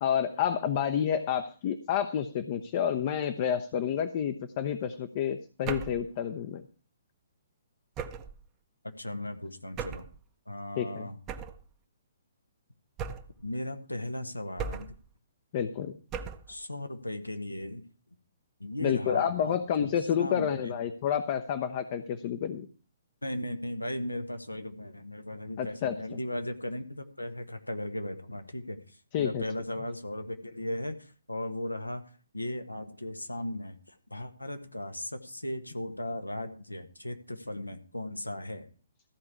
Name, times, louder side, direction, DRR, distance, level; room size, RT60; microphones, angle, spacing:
voice 1, 0.0-6.6 10.8-11.1 15.5-15.9 18.8-22.7 25.6-26.2 29.1-29.4, left 8 dB, 40° left, 8 dB, 0.8 m, -29 dB
sound 1, 5.7-6.1 8.0-8.4 9.8-10.2 11.3-11.7 13.0-13.4 14.6-15.1 16.1-16.5, right 6 dB, 25° right, 0.8 m, -37 dB
voice 2, 9.0-10.1 10.5-11.2 13.4-14.9 16.5-17.8 18.6-20.8 23.2-32.0 32.3-33.8 34.1-38.7, left 1 dB, 85° left, 7 dB, 1.4 m, -37 dB
14.0 x 4.8 x 8.3 m, 0.38 s
figure-of-eight pair, 125°, 0 cm